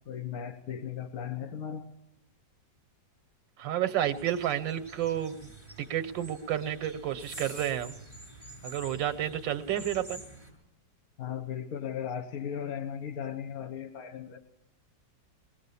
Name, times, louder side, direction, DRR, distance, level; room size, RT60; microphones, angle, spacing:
voice 1, 0.1-1.9 11.2-14.4, left 8 dB, 55° left, 6 dB, 1.5 m, -36 dB
voice 2, 3.6-5.5 5.8-7.9 8.6-10.2, right 11 dB, 85° right, 10 dB, 1.7 m, -31 dB
sound 1, 4.0-10.5, right 1 dB, 15° left, 7.0 m, -48 dB
21.5 x 18.0 x 6.9 m, 0.80 s
omnidirectional pair, 2.0 m